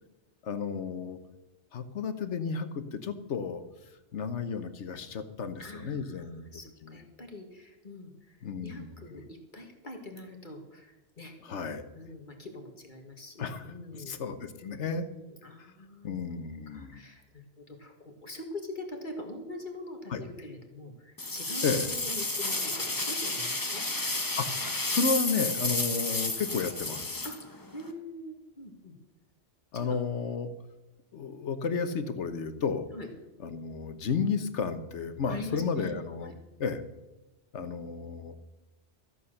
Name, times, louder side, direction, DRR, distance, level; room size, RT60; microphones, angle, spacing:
voice 1, 0.4-1.2 1.7-3.6 4.1-6.4 6.8-7.0 8.4-8.9 11.4-12.0 13.4-15.0 16.0-17.0 20.1-20.2 21.6-21.9 24.4-24.5 24.9-27.2 29.7-30.5 31.1-32.9 33.4-36.3 36.6-36.8 37.5-38.4, left 5 dB, 80° left, 10 dB, 1.4 m, -32 dB
voice 2, 5.6-11.3 11.9-14.2 14.6-16.1 16.7-23.8 27.2-28.9 29.7-30.0 32.9-33.1 35.3-36.3, left 1 dB, 45° left, 3 dB, 1.9 m, -44 dB
sound 1, 21.2-27.9, left 2 dB, 20° left, 1.1 m, -31 dB
14.0 x 8.5 x 6.5 m, 1.1 s
omnidirectional pair, 1.2 m